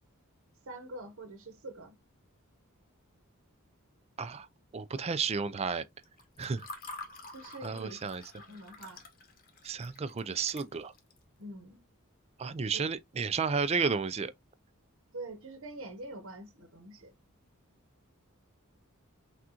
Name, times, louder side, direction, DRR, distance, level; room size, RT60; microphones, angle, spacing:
voice 1, 0.6-2.0 7.3-9.0 11.4-11.8 15.1-17.1, right 1 dB, 65° right, 0.9 m, -45 dB
voice 2, 4.7-5.8 6.4-6.7 7.6-8.2 9.6-10.9 12.4-14.3, right 5 dB, 30° right, 0.4 m, -32 dB
Water / Fill (with liquid), 6.0-11.2, left 2 dB, 45° left, 1.2 m, -48 dB
6.1 x 2.4 x 2.8 m
head